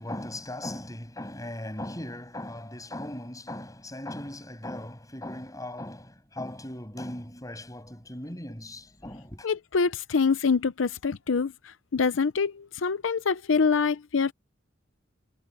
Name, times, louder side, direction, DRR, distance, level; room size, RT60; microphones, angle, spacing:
voice 1, 0.0-9.5, left 1 dB, 20° left, 8.0 m, -38 dB
voice 2, 9.4-11.5 11.9-14.3, left 5 dB, 85° left, 0.6 m, -25 dB
head